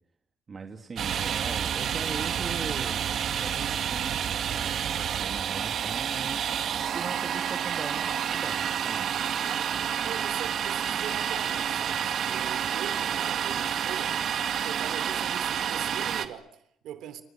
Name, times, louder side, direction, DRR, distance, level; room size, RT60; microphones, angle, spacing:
voice 1, 0.5-3.0 3.4-9.1, right 5 dB, 40° right, 2.9 m, -40 dB
Domestic sounds home sounds, 1.0-16.3, right 9 dB, 65° right, 2.2 m, -29 dB
voice 2, 9.4-14.2 14.6-17.2, right 10 dB, 85° right, 3.5 m, -41 dB
29.0 x 27.0 x 6.3 m
cardioid pair, 90°, 0 cm